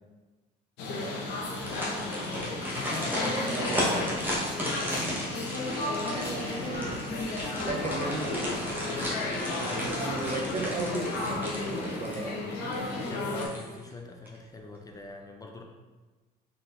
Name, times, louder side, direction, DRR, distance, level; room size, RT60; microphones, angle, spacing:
sound 1, 0.8-13.5, left 2 dB, 85° left, 0.9 m, -33 dB
sound 2, 1.5-12.4 12.7-12.8 13.2-13.9 14.3-14.4, equal, 10° right, 1.1 m, -35 dB
voice 1, 2.3-4.2 11.3-11.6 13.1-15.6, left 3 dB, 20° left, 2 dB, 0.4 m, -43 dB
voice 2, 3.2-4.2 6.1-7.0 7.6-9.3 9.6-11.3 11.6-12.5, right 3 dB, 40° right, 3 dB, 0.6 m, -36 dB
4.2 x 3.8 x 2.6 m, 1.3 s
cardioid pair, 110°, 17 cm